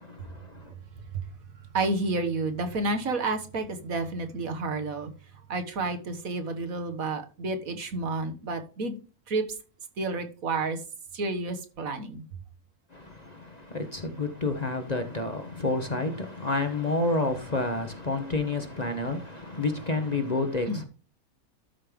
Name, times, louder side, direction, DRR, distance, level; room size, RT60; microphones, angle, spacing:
voice 1, 1.7-5.1 5.5-9.0 9.3-9.4 10.0-10.8 11.1-12.2 20.7-20.8, right 3 dB, 65° right, 1.8 m, -30 dB
voice 2, 13.7-20.8, left 3 dB, 30° left, 1.0 m, -29 dB
12.5 x 5.4 x 3.6 m
omnidirectional pair, 1.6 m